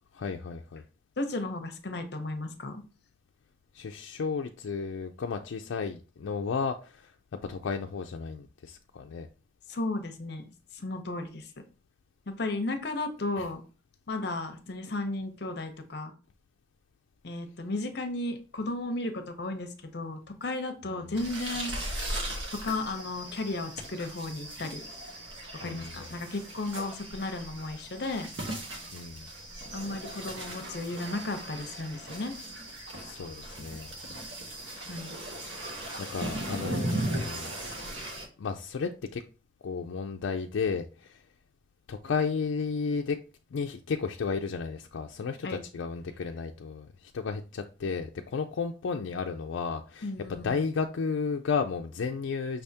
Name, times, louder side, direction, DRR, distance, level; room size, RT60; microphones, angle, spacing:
voice 1, 0.1-0.8 3.7-7.1 7.4-9.3 13.4-13.5 20.9-21.1 25.6-26.0 28.9-29.3 32.9-33.9 36.0-37.5 38.4-39.2 39.6-41.2 41.9-43.2 43.5-52.6, left 5 dB, 90° left, 4 dB, 0.4 m, -33 dB
voice 2, 1.2-2.8 9.7-11.5 12.3-13.6 14.1-16.1 17.2-21.8 22.6-24.8 25.6-28.3 29.7-32.3 34.8-35.1 45.4-45.6 50.0-50.7, left 2 dB, 60° left, 7 dB, 0.8 m, -34 dB
sound 1, 21.2-38.3, right 1 dB, 80° right, 1.1 m, -38 dB
5.6 x 3.4 x 2.7 m, 0.34 s
head